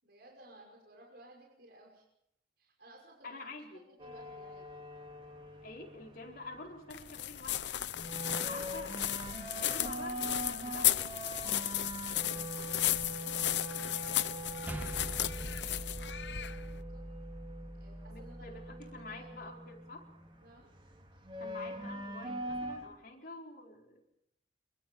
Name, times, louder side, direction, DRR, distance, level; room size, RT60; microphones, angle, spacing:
voice 1, 0.0-2.0 2.6-3.3 4.0-4.7 12.9-17.0 17.7-18.4 18.7-19.3 20.4-20.7, right 1 dB, 65° right, -1 dB, 6.0 m, -58 dB
voice 2, 3.2-3.8 5.6-7.8 8.3-9.0 9.5-11.2 18.1-20.0 21.4-24.0, left 2 dB, 60° left, 0 dB, 4.6 m, -47 dB
sound 1, 4.0-22.9, right 1 dB, 30° right, 4.7 m, -43 dB
sound 2, 6.9-16.8, left 13 dB, 80° left, 0.8 m, -34 dB
sound 3, 14.7-19.2, equal, 10° right, 1.9 m, -44 dB
25.5 x 24.0 x 5.6 m, 0.80 s
head